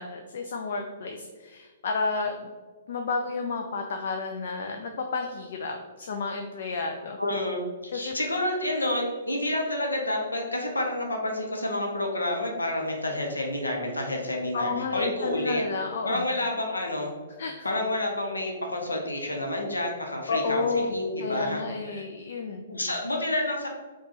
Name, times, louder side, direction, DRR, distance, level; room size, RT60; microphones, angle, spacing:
voice 1, 0.0-2.5 2.9-7.2 7.9-8.2 14.5-16.2 17.4-17.7 20.3-22.7, left 4 dB, 50° left, 4 dB, 0.4 m, -31 dB
voice 2, 7.2-15.6 16.0-17.1 17.6-22.0 22.7-23.7, left 1 dB, 75° left, 1 dB, 0.8 m, -29 dB
4.5 x 2.3 x 4.2 m, 1.4 s
figure-of-eight pair, 115°, 0 cm